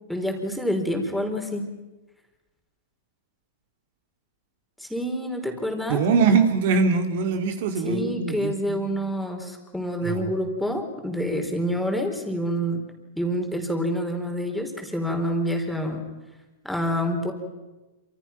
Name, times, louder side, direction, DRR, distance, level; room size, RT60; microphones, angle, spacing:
voice 1, 0.1-1.6 4.8-6.0 7.8-12.8 13.1-16.0 16.6-17.3, equal, ahead, 3 dB, 4.2 m, -27 dB
voice 2, 5.9-8.8 10.0-10.2, right 5 dB, 55° right, 6 dB, 3.2 m, -22 dB
28.0 x 26.5 x 6.0 m, 1.1 s
hypercardioid pair, 145°, 0 cm